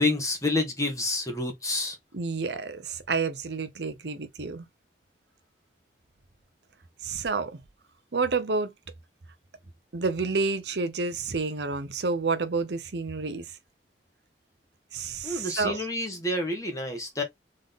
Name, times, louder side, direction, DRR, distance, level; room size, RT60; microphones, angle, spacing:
voice 1, 0.0-2.0 15.2-17.2, left 2 dB, 20° left, 1.5 m, -28 dB
voice 2, 2.1-4.7 7.0-7.6 8.1-8.7 9.9-13.4 14.9-15.9, right 4 dB, 65° right, 0.8 m, -29 dB
3.8 x 3.7 x 3.7 m
head